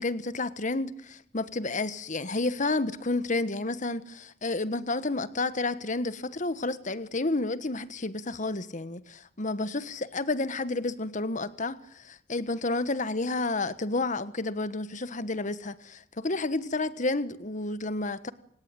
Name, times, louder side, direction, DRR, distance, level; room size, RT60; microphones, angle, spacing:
voice 1, 0.0-18.3, left 2 dB, 40° left, 1.4 m, -30 dB
28.5 x 17.0 x 9.3 m
head